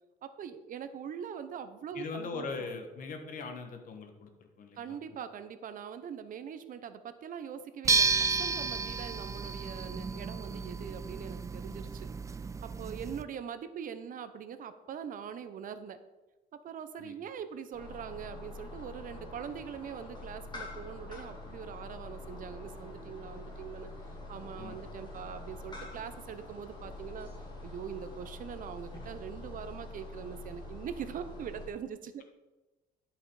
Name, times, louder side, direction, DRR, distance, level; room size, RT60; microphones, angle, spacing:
voice 1, 0.2-2.7 4.8-12.1 12.6-16.0 16.5-23.9 24.3-27.3 27.6-32.2, right 8 dB, 55° right, 11 dB, 0.8 m, -42 dB
voice 2, 1.9-4.3 4.6-5.0 17.0-17.2 24.6-24.8, left 4 dB, 55° left, 5 dB, 1.6 m, -40 dB
sound 1, 7.8-13.2, right 4 dB, 20° right, 0.4 m, -32 dB
sound 2, 17.7-31.7, left 2 dB, 25° left, 3.1 m, -45 dB
11.5 x 5.7 x 4.8 m, 1.1 s
cardioid pair, 110°, 17 cm